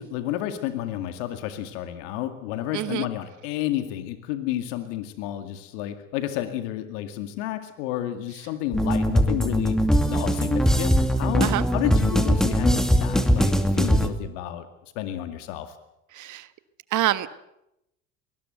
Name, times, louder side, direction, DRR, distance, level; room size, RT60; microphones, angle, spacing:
voice 1, 0.0-9.8 10.1-14.7 15.0-15.8, left 12 dB, 85° left, 8 dB, 2.3 m, -31 dB
voice 2, 2.7-3.1 11.4-11.6 16.1-16.5 16.9-17.3, right 14 dB, 55° right, 13 dB, 1.5 m, -25 dB
sound 1, 8.7-14.1, equal, ahead, 2.5 m, -21 dB
23.5 x 20.0 x 8.1 m, 0.84 s
supercardioid pair, 100°, 36 cm